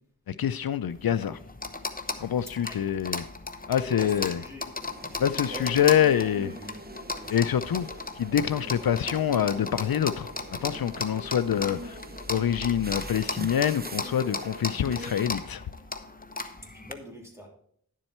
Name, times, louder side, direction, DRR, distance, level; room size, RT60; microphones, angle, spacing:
voice 1, 0.3-1.4 2.2-3.2 3.7-4.4 5.2-6.5 7.3-10.3 10.6-12.0 12.3-15.6, left 9 dB, 75° left, 0.5 m, -26 dB
sound 1, 0.9-16.9, left 3 dB, 25° left, 0.9 m, -36 dB
voice 2, 3.7-4.7 5.4-6.8 7.1-7.5 16.6-17.5, equal, 5° right, 3.2 m, -44 dB
sound 2, 4.8-15.3, right 2 dB, 25° right, 0.7 m, -43 dB
10.5 x 7.5 x 4.3 m
wide cardioid pair, 65°, 36 cm